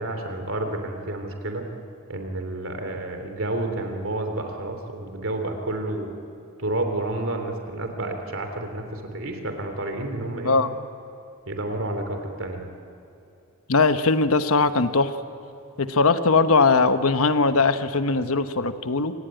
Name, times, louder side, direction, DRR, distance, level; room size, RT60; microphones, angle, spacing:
voice 1, 0.0-1.6 2.1-6.1 6.6-10.6 11.5-12.7, right 2 dB, 60° right, 5 dB, 3.3 m, -30 dB
voice 2, 13.7-15.1 15.8-19.1, left 3 dB, 75° left, 10 dB, 1.1 m, -20 dB
27.5 x 18.5 x 9.1 m, 2.7 s
head